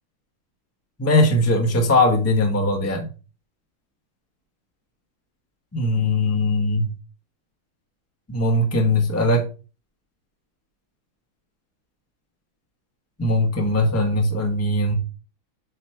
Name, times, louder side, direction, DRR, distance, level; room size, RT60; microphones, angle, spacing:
voice 1, 1.0-3.1 5.7-6.9 8.3-9.4 13.2-14.9, left 1 dB, 10° left, 2 dB, 0.7 m, -20 dB
8.2 x 3.3 x 4.4 m, 0.34 s
omnidirectional pair, 2.3 m